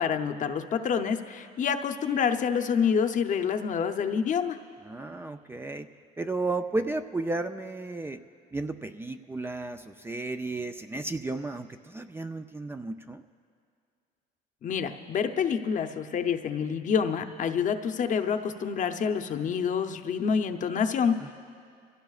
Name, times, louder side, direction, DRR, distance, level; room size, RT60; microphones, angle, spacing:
voice 1, 0.0-4.6 14.6-21.3, left 6 dB, 50° left, 7 dB, 0.8 m, -27 dB
voice 2, 4.9-5.9 6.2-8.2 8.5-13.2 21.2-21.3, right 2 dB, 15° right, 7 dB, 0.4 m, -33 dB
25.0 x 16.5 x 2.4 m, 2.3 s
cardioid pair, 110°, 17 cm